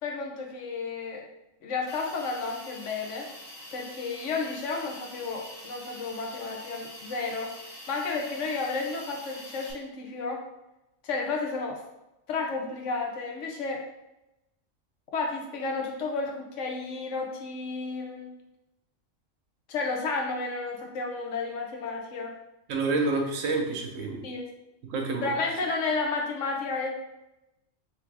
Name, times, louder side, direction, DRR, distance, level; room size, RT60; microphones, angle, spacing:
voice 1, 0.0-1.3 1.6-3.3 3.7-7.5 7.9-10.4 11.0-11.8 12.3-13.8 15.1-18.3 19.7-22.3 24.2-24.5 25.2-26.9, left 4 dB, 70° left, 1 dB, 1.0 m, -32 dB
Hiss, 1.9-9.7, left 1 dB, 85° left, 1.5 m, -45 dB
voice 2, 22.7-24.2 24.9-25.4, right 3 dB, 75° right, 2 dB, 1.1 m, -28 dB
3.6 x 3.4 x 3.3 m, 0.92 s
omnidirectional pair, 1.4 m